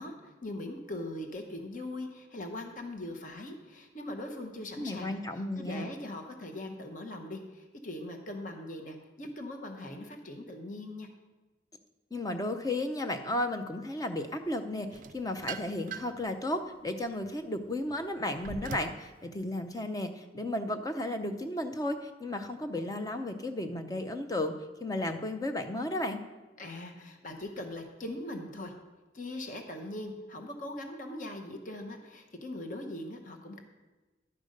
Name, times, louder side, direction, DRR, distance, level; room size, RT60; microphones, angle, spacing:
voice 1, 0.0-5.2 5.6-11.1 26.6-28.7 29.1-33.6, left 1 dB, 45° left, 4 dB, 0.9 m, -41 dB
voice 2, 4.8-5.9 12.1-24.5 24.8-26.2, left 1 dB, 20° left, 6 dB, 0.6 m, -34 dB
sound 1, 14.9-16.3 16.8-19.1, right 5 dB, 45° right, 0.4 m, -42 dB
11.0 x 5.2 x 6.5 m, 1.2 s
head